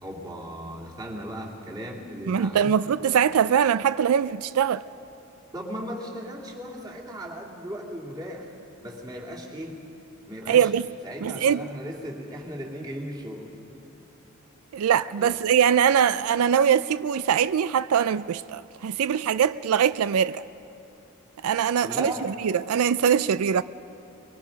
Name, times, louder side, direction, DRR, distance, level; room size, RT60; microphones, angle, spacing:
voice 1, 0.0-2.7 5.5-8.5 8.8-9.8 10.3-10.7 11.0-13.6 15.2-15.5 21.8-22.3, equal, 20° right, 2.6 m, -37 dB
voice 2, 2.3-4.8 10.5-10.9 11.2-11.7 14.7-20.4 21.4-23.6, right 8 dB, 90° right, 0.4 m, -22 dB
24.0 x 23.0 x 5.2 m
head